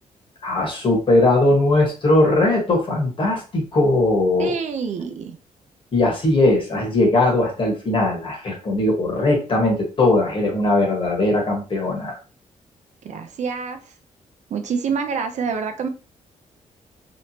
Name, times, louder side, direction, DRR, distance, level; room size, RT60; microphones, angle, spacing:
voice 1, 0.4-4.6 5.9-12.2, left 2 dB, 40° left, 0 dB, 1.3 m, -19 dB
voice 2, 4.4-5.4 13.0-13.8 14.5-15.9, right 5 dB, 65° right, 7 dB, 0.5 m, -26 dB
3.3 x 3.1 x 2.7 m, 0.36 s
cardioid pair, 110°, 13 cm